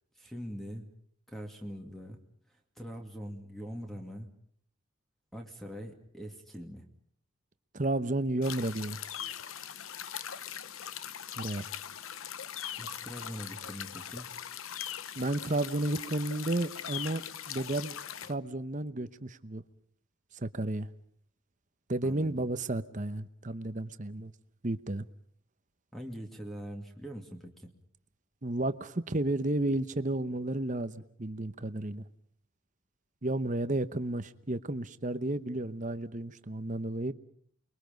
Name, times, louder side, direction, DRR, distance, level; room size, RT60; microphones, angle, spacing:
voice 1, 0.2-0.9 1.3-2.2 2.8-4.3 5.3-6.9 12.8-14.3 22.0-22.5 25.9-27.7, equal, ahead, 2.4 m, -43 dB
voice 2, 7.7-9.0 11.4-11.7 15.2-17.2 17.5-19.6 20.3-20.9 21.9-24.3 24.6-25.0 28.4-32.0 33.2-37.1, right 2 dB, 35° right, 1.0 m, -32 dB
sound 1, 8.4-18.3, left 9 dB, 70° left, 0.9 m, -41 dB
29.5 x 22.0 x 5.3 m
head